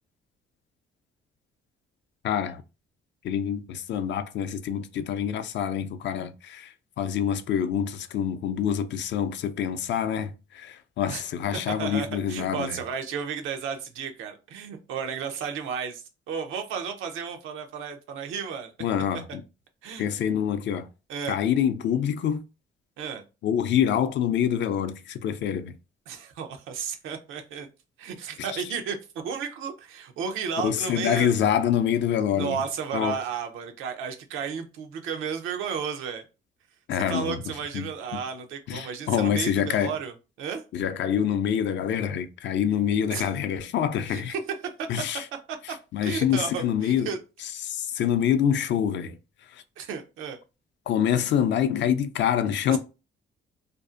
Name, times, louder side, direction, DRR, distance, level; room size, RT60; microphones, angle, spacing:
voice 1, 2.2-2.6 3.2-12.8 18.8-19.4 20.0-20.9 21.3-22.4 23.4-25.8 28.4-28.6 30.6-32.6 32.9-33.2 36.9-38.2 38.7-39.9 40.7-44.4 44.9-45.3 45.6-47.1 47.4-49.6 50.9-52.8, left 9 dB, 65° left, 0.4 m, -26 dB
voice 2, 11.7-18.7 19.8-20.1 21.1-21.4 23.0-23.2 26.1-27.7 28.0-29.0 29.2-31.3 32.3-36.2 37.1-40.1 40.4-40.6 43.1-43.3 44.1-44.2 44.8-44.9 45.7-45.8 46.0-47.2 49.8-50.4 52.7-52.8, right 6 dB, 90° right, 0.6 m, -33 dB
2.6 x 2.4 x 2.4 m
cardioid pair, 90°, 20 cm